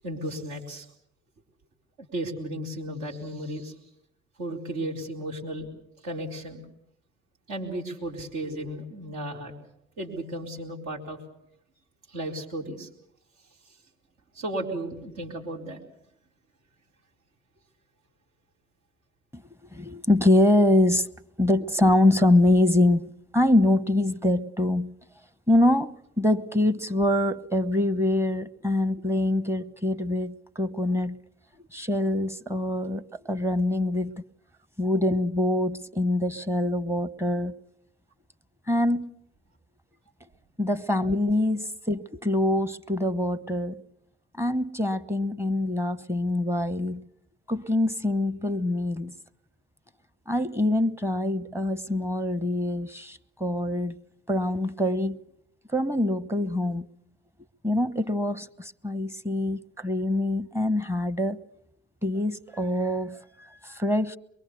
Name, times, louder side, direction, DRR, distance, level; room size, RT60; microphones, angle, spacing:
voice 1, 0.0-0.9 2.0-3.7 4.4-5.7 6.0-6.6 7.5-9.5 10.0-11.2 12.1-12.9 14.3-15.8, right 1 dB, 70° right, 4.4 m, -34 dB
voice 2, 19.7-21.1 21.4-24.9 25.5-31.2 31.7-34.2 34.8-37.6 38.7-39.1 40.6-43.8 44.4-47.1 47.5-49.1 50.3-54.0 54.3-55.2 55.7-56.8 57.6-61.4 62.0-64.2, left 1 dB, 10° right, 1.0 m, -24 dB
23.5 x 22.5 x 7.0 m
hypercardioid pair, 60°, 33 cm